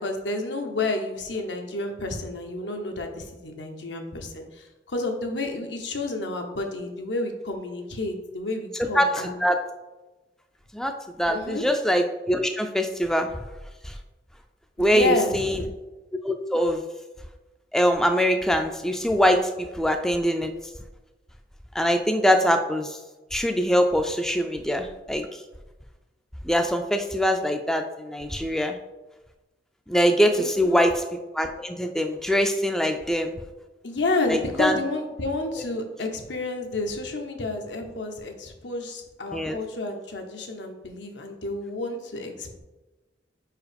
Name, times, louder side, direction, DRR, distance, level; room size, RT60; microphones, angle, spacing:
voice 1, 0.0-9.4 11.3-11.6 14.8-15.6 30.4-30.8 33.8-42.6, left 2 dB, 80° left, 4 dB, 1.0 m, -30 dB
voice 2, 8.9-9.6 10.7-13.3 13.8-13.9 14.8-15.6 16.2-16.8 17.7-20.5 21.7-23.0 23.3-25.4 26.4-28.8 29.9-33.4 34.3-34.8 39.3-39.6, equal, 5° left, 5 dB, 0.3 m, -23 dB
4.9 x 4.7 x 5.1 m, 1.1 s
head